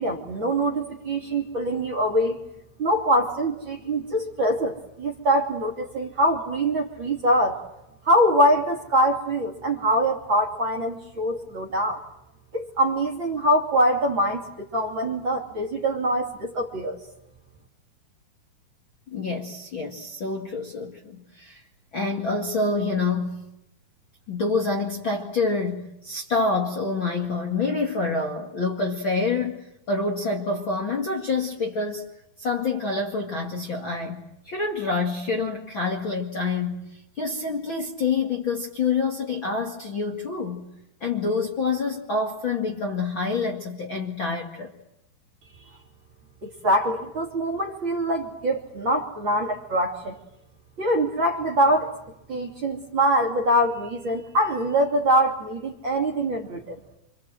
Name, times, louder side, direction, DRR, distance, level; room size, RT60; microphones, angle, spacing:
voice 1, 0.0-2.4 2.8-7.6 8.0-12.0 12.5-14.4 14.7-17.0 46.4-50.2 50.8-51.9 52.3-56.8, right 1 dB, 35° right, 3.0 m, -23 dB
voice 2, 19.1-21.6 21.9-23.4 24.3-32.0 32.4-36.8 37.2-40.7 41.0-44.7, left 3 dB, 40° left, 2.2 m, -27 dB
27.5 x 26.0 x 7.9 m
omnidirectional pair, 4.5 m